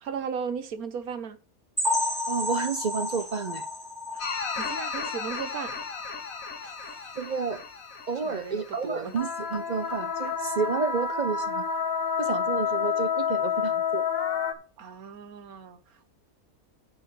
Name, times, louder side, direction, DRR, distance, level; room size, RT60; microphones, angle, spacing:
voice 1, 0.0-1.4 4.1-5.8 6.6-7.1 8.2-9.1 14.8-16.1, right 6 dB, 90° right, 1.5 m, -37 dB
sound 1, 1.8-5.4 5.8-5.9 6.3-6.4 6.9-7.0, left 2 dB, ahead, 2.7 m, -31 dB
voice 2, 2.3-3.7 7.2-7.6 8.1-11.6 12.2-14.0, right 5 dB, 65° right, 0.4 m, -30 dB
sound 2, 4.2-8.8 9.1-14.5, left 6 dB, 70° left, 1.6 m, -30 dB
10.5 x 4.4 x 6.8 m
omnidirectional pair, 1.5 m